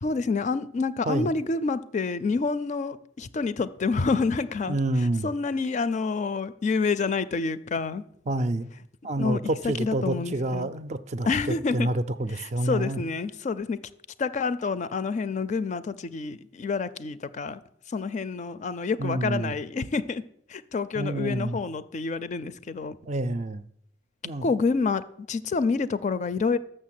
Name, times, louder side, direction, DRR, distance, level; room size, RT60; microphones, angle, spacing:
voice 1, 0.0-4.8 5.2-8.0 9.2-10.7 11.3-11.9 12.4-13.8 14.2-17.6 17.9-20.2 20.5-23.0 24.4-26.6, left 4 dB, 40° left, 0.4 m, -28 dB
voice 2, 4.7-5.3 8.3-8.7 9.0-11.3 11.7-13.0 19.0-19.5 20.9-21.6 23.0-23.7 24.2-24.5, right 1 dB, 40° right, 0.4 m, -28 dB
6.6 x 6.4 x 7.5 m
head